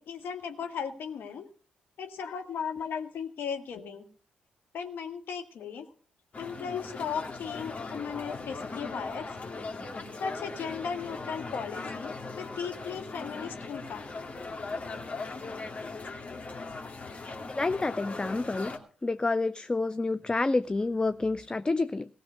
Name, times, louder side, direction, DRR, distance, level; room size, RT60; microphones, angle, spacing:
voice 1, 0.0-1.5 2.0-4.1 4.7-5.9 6.4-9.4 10.2-14.1 16.0-16.1, left 6 dB, 60° left, 6 dB, 1.8 m, -36 dB
sound 1, 6.3-18.8, left 3 dB, 40° left, 2.3 m, -39 dB
voice 2, 17.5-18.7 19.0-22.1, left 3 dB, 25° left, 15 dB, 0.5 m, -28 dB
17.5 x 6.7 x 6.7 m, 0.43 s
hypercardioid pair, 40°, 4 cm